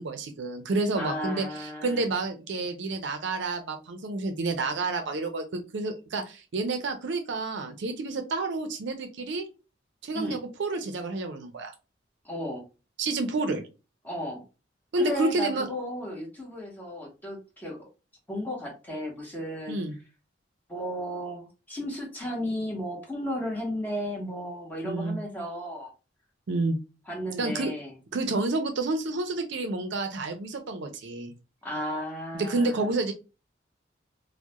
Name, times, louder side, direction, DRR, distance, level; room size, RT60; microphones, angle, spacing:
voice 1, 0.0-9.5 10.0-11.7 13.0-13.6 14.9-15.7 19.7-19.9 24.8-25.2 26.5-26.8 27.4-27.7 28.1-31.3 32.3-33.1, right 3 dB, 70° right, 6 dB, 0.5 m, -29 dB
voice 2, 1.0-2.0 10.1-10.4 12.2-12.6 14.0-14.4 15.0-17.8 18.3-19.8 20.7-25.9 27.1-27.9 31.6-32.9, equal, 10° left, -2 dB, 0.8 m, -34 dB
2.3 x 2.1 x 2.8 m, 0.30 s
head